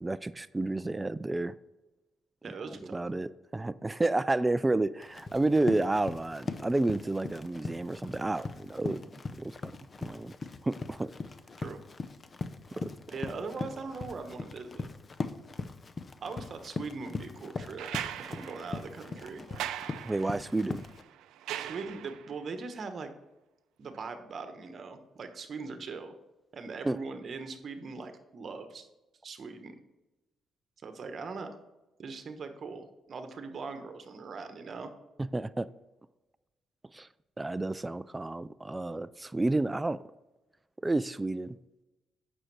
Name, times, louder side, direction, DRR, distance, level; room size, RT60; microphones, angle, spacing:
voice 1, 0.0-1.5 2.6-9.0 9.4-9.7 10.0-10.3 10.6-11.1 12.7-12.9 20.0-20.8 26.8-27.0 35.3-35.7 36.9-37.1 37.4-40.0 40.8-41.6, right 2 dB, 15° right, 0.3 m, -30 dB
voice 2, 2.4-3.0 11.6-11.8 13.1-14.9 16.2-17.9 18.2-19.5 21.5-23.1 23.8-26.1 26.5-28.9 29.2-29.7 30.8-31.5 32.0-34.9, right 4 dB, 50° right, 1.1 m, -40 dB
Run, 5.0-21.0, left 4 dB, 35° left, 0.6 m, -40 dB
sound 1, 17.8-22.4 23.9-24.0, right 11 dB, 90° right, 0.4 m, -40 dB
8.9 x 6.4 x 4.7 m
cardioid pair, 90°, 0 cm